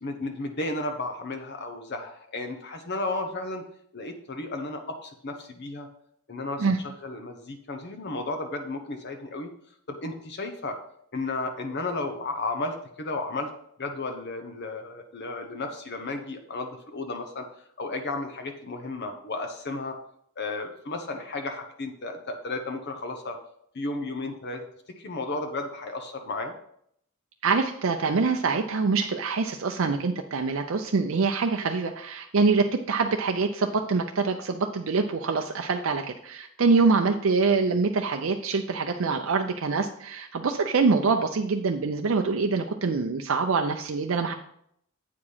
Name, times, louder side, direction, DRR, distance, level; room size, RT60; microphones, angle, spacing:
voice 1, 0.0-3.6 3.9-5.9 6.3-9.5 9.9-10.8 11.1-13.5 13.8-17.5 17.8-20.0 20.4-23.4 23.7-24.7 25.0-26.5, left 2 dB, 50° left, 5 dB, 0.8 m, -33 dB
voice 2, 27.4-44.3, right 4 dB, 60° right, 4 dB, 0.5 m, -25 dB
8.4 x 4.9 x 5.5 m, 0.70 s
head